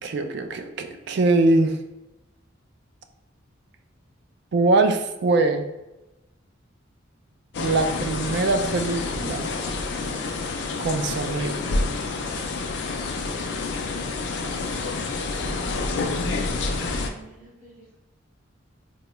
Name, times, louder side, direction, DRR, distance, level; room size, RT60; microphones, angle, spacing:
voice 1, 0.0-1.8 4.5-5.7 7.6-9.5 10.8-11.6, right 2 dB, 55° right, 7 dB, 0.3 m, -22 dB
sound 1, 7.5-17.1, left 3 dB, 55° left, 0.3 m, -28 dB
voice 2, 16.5-18.0, right 3 dB, 30° right, -8 dB, 1.4 m, -50 dB
3.9 x 2.3 x 2.9 m, 0.98 s
head